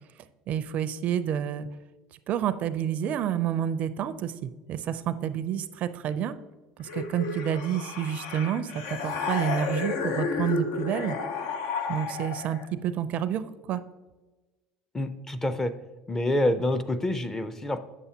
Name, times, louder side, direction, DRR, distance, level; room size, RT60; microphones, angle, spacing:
voice 1, 0.5-1.7 2.3-6.3 6.8-11.2 11.9-13.8, right 9 dB, 50° right, 13 dB, 0.4 m, -29 dB
sound 1, 6.9-12.7, left 4 dB, 80° left, 0.8 m, -32 dB
voice 2, 14.9-15.7 16.1-17.8, left 1 dB, 15° left, 11 dB, 0.5 m, -27 dB
8.4 x 7.0 x 2.8 m, 1.2 s
supercardioid pair, 100°, 3 cm